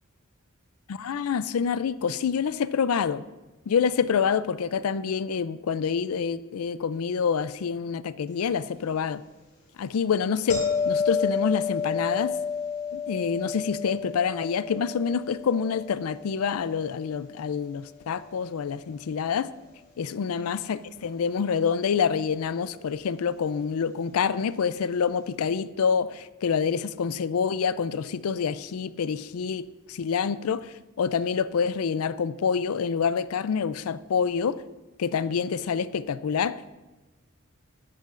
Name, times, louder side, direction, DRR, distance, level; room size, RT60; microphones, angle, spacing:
voice 1, 0.9-3.2 3.7-9.2 9.8-12.4 12.9-19.5 20.0-34.6 35.0-36.7, left 6 dB, 75° left, 16 dB, 0.4 m, -27 dB
sound 1, 10.5-17.5 22.7-22.9, left 5 dB, 45° left, 3.3 m, -31 dB
14.0 x 10.5 x 2.5 m, 1.2 s
head